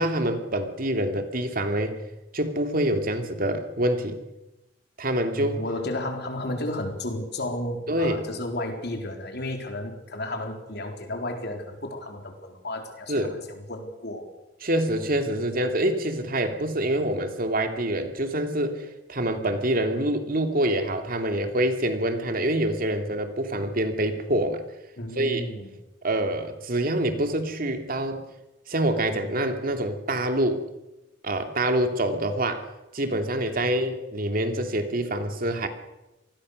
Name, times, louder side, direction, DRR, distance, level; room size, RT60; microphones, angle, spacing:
voice 1, 0.0-2.0 2.3-4.2 5.0-5.6 7.9-8.2 13.1-13.4 14.6-24.6 25.1-25.5 26.0-28.2 28.7-30.6 31.2-32.6 32.9-35.7, right 1 dB, 50° right, 6 dB, 2.7 m, -26 dB
voice 2, 5.4-14.3 25.0-25.7 33.6-33.7, left 1 dB, 60° left, 4 dB, 4.1 m, -33 dB
27.0 x 19.5 x 6.6 m, 0.98 s
head